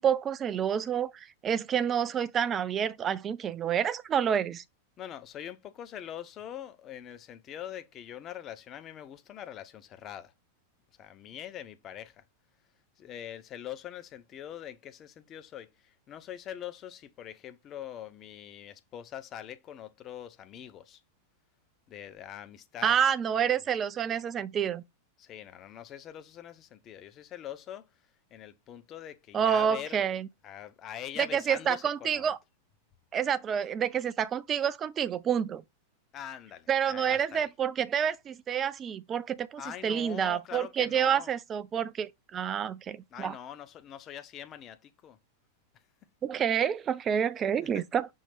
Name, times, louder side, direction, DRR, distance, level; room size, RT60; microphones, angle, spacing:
voice 1, 0.0-4.6 22.8-24.8 29.3-30.3 31.2-32.4 33.1-35.6 36.7-43.4 46.2-48.1, right 8 dB, 25° right, 0.3 m, -28 dB
voice 2, 5.0-10.3 11.0-12.2 13.0-21.0 21.9-23.0 25.2-27.9 28.3-30.1 30.4-32.3 36.1-37.5 39.6-41.3 43.1-45.2 47.6-47.8, left 10 dB, 30° left, 0.6 m, -43 dB
5.5 x 2.7 x 3.4 m
figure-of-eight pair, 90°, 0 cm